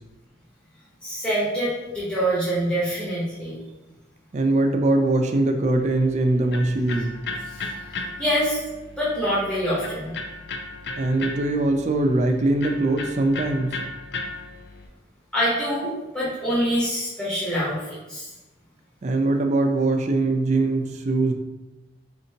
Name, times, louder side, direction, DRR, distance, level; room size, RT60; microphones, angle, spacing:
voice 1, 1.0-3.6 7.5-7.6 7.9-8.6 9.0-10.2 15.3-18.3, equal, 5° left, -10 dB, 0.9 m, -25 dB
voice 2, 4.3-7.1 11.0-13.8 19.0-21.3, right 2 dB, 35° right, 5 dB, 0.3 m, -22 dB
Electric guitar, 5.8-14.9, left 3 dB, 60° left, 0.4 m, -36 dB
4.3 x 2.7 x 2.7 m, 1.1 s
head